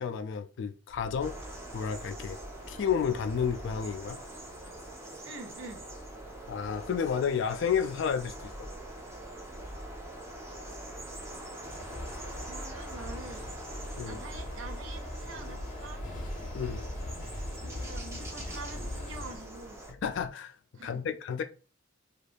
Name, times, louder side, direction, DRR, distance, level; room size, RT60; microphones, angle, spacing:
voice 1, 0.0-1.3 1.7-2.4 2.7-4.2 6.5-8.7 14.0-14.2 16.5-16.8 19.9-20.6 20.8-21.4, left 7 dB, 60° left, 0.3 m, -31 dB
sound 1, 0.9-20.3, equal, 50° right, 0.9 m, -49 dB
sound 2, 1.2-19.9, right 1 dB, 15° right, 0.5 m, -45 dB
voice 2, 5.2-5.9 10.3-10.6 12.4-13.4 14.0-16.1 17.6-19.8 20.7-21.0, right 3 dB, 65° right, 0.5 m, -46 dB
sound 3, 11.6-19.4, left 1 dB, 40° left, 0.7 m, -40 dB
2.5 x 2.3 x 3.3 m
head